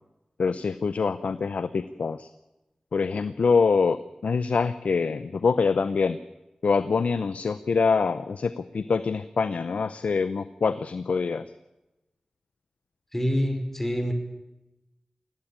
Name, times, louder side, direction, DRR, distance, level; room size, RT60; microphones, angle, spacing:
voice 1, 0.4-2.3 2.9-4.0 4.2-6.2 6.6-11.4, left 5 dB, 90° left, 13 dB, 0.7 m, -25 dB
voice 2, 13.1-14.1, equal, 15° left, 6 dB, 4.8 m, -26 dB
20.0 x 16.5 x 8.8 m, 0.95 s
cardioid pair, 50°, 2 cm